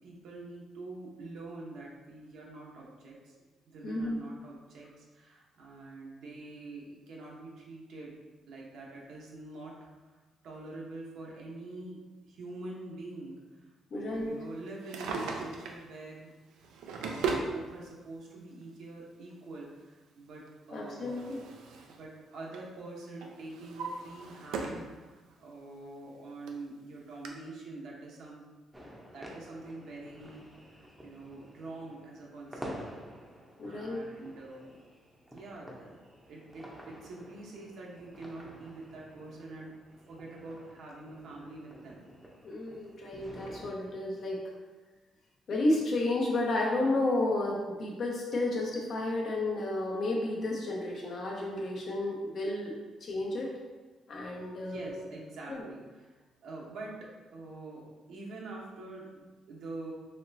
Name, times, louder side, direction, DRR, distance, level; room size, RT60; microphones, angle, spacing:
voice 1, 0.0-3.3 3.7-8.1 8.5-16.3 17.0-21.5 21.9-28.4 29.0-33.0 33.6-34.9 35.3-36.0 36.3-39.7 40.1-42.0 54.5-56.2 56.4-59.9, right 2 dB, 75° right, -3 dB, 0.9 m, -45 dB
voice 2, 3.8-4.2 13.9-14.3 20.7-21.4 33.6-34.0 42.4-44.4 45.5-52.7 53.0-53.5 54.1-55.0 55.5-55.6, left 2 dB, 60° left, -2 dB, 0.9 m, -32 dB
Drawer open or close, 14.7-15.8 16.6-17.5 18.6-18.7 20.5-22.0 22.3-22.7 23.2-24.9 25.3-25.4 26.1-26.2 26.5-26.6 27.2-27.3, right 4 dB, 90° right, 0.4 m, -37 dB
sound 1, 28.7-43.7, equal, 5° right, 0.7 m, -50 dB
4.2 x 3.0 x 2.6 m, 1.3 s
cardioid pair, 90°, 0 cm